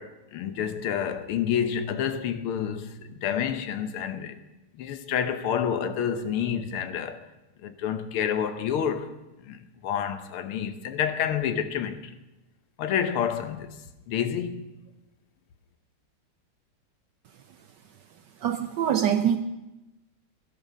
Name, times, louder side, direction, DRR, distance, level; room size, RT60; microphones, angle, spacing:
voice 1, 0.0-4.4 4.8-7.2 7.6-9.1 9.4-12.1 12.8-13.7 14.1-14.7, left 8 dB, 80° left, 1.8 m, -29 dB
voice 2, 18.4-19.4, right 9 dB, 75° right, 1.0 m, -24 dB
16.5 x 11.0 x 5.5 m
omnidirectional pair, 2.4 m